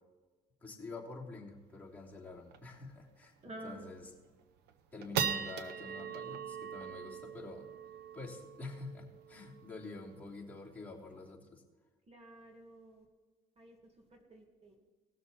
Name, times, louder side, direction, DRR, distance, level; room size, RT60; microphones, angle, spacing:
voice 1, 0.6-3.3 3.6-4.1 4.9-7.7 8.1-11.6, left 3 dB, 10° left, -5 dB, 3.0 m, -47 dB
sound 1, 1.6-1.7 2.0-2.1 2.5-2.8 3.2-3.3 3.9-4.2 4.7-11.3, right 7 dB, 80° right, 0.9 m, -41 dB
voice 2, 3.4-3.9 12.1-13.1 13.6-13.8 14.1-14.8, right 1 dB, 40° right, 2 dB, 2.2 m, -50 dB
19.0 x 6.8 x 4.3 m, 1.3 s
cardioid pair, 110°, 17 cm